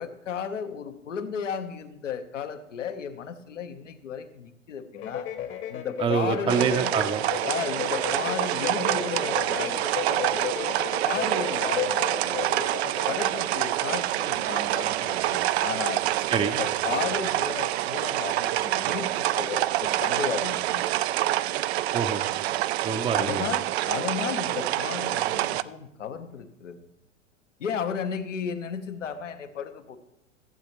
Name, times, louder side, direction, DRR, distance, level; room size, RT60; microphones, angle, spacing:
voice 1, 0.0-5.3 5.7-6.8 7.4-10.5 11.0-12.7 13.1-16.0 16.4-20.8 23.1-26.8 27.6-30.0, left 7 dB, 75° left, 7 dB, 1.1 m, -34 dB
sound 1, 4.9-13.5, left 9 dB, 30° left, 1.0 m, -34 dB
voice 2, 6.0-7.2 16.3-16.6 21.9-22.3 22.8-23.5, right 6 dB, 15° right, 8 dB, 0.7 m, -26 dB
sound 2, 6.5-25.6, right 14 dB, 60° right, 0.5 m, -27 dB
15.0 x 7.9 x 3.0 m, 0.87 s
figure-of-eight pair, 90°, 37 cm